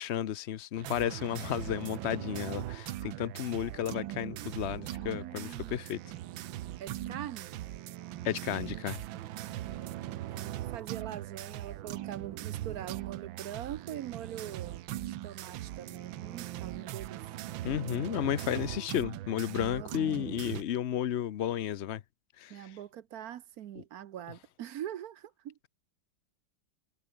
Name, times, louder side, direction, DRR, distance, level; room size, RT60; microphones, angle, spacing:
voice 1, 0.0-6.0 8.2-9.0 17.6-22.0 22.4-22.8, left 10 dB, 90° left, 0.5 m, -33 dB
sound 1, 0.8-20.6, right 14 dB, 85° right, 1.6 m, -40 dB
voice 2, 5.0-5.8 6.8-7.5 9.4-17.2 19.5-19.9 22.5-25.5, right 11 dB, 65° right, 1.0 m, -43 dB
omnidirectional pair, 2.1 m